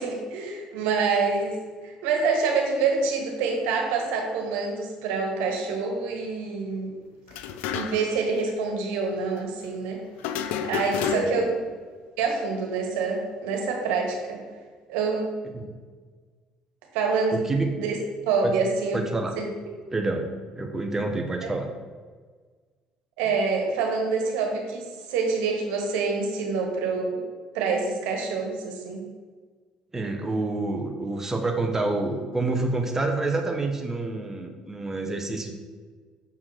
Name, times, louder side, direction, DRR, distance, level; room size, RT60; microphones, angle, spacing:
voice 1, 0.0-1.6 1.8-6.9 7.7-10.0 10.6-11.6 12.2-14.4 14.9-15.3 16.9-17.5 17.8-17.9 18.2-19.0 19.4-19.5 21.4-21.5 23.2-27.2 27.5-29.0, right 4 dB, 85° right, 2 dB, 1.4 m, -26 dB
sound 1, 7.3-8.2 8.5-8.6 10.2-11.6, left 8 dB, 80° left, 0.5 m, -30 dB
voice 2, 11.1-11.5 15.5-15.8 17.3-17.8 18.4-18.5 18.9-19.4 19.9-20.3 20.6-21.7 29.9-35.5, right 2 dB, 15° right, 3 dB, 0.9 m, -27 dB
6.5 x 3.7 x 6.2 m, 1.5 s
supercardioid pair, 85°, 2 cm